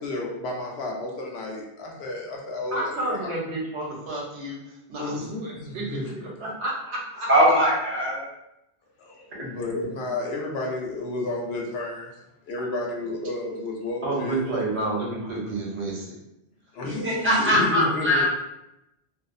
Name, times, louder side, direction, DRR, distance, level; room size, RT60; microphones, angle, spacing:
voice 1, 0.0-3.3 5.0-6.2 9.0-12.1 12.4-14.6 16.7-18.3, left 2 dB, 70° left, -1 dB, 0.8 m, -31 dB
voice 2, 2.7-4.6 4.9-6.0 6.4-7.3 9.7-9.8 14.0-16.1, right 2 dB, 80° right, -3 dB, 1.0 m, -30 dB
voice 3, 7.3-8.3 16.9-18.3, equal, 20° right, -6 dB, 0.3 m, -21 dB
2.6 x 2.0 x 2.4 m, 0.88 s
omnidirectional pair, 1.1 m